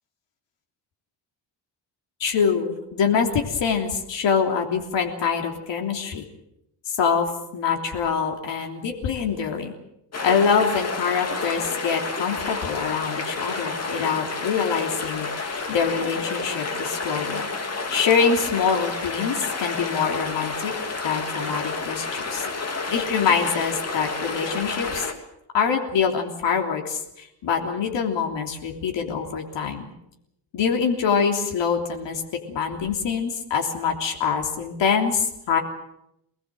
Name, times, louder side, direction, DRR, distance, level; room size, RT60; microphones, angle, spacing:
voice 1, 2.2-6.2 6.9-9.8 10.2-17.5 17.9-20.7 21.0-22.4 22.9-25.1 25.5-29.9 30.5-32.2 32.5-35.6, left 6 dB, 75° left, 2 dB, 3.4 m, -24 dB
sound 1, 10.1-25.1, left 3 dB, 35° left, 2.7 m, -30 dB
25.0 x 20.0 x 7.8 m, 0.82 s
cardioid pair, 140°, 44 cm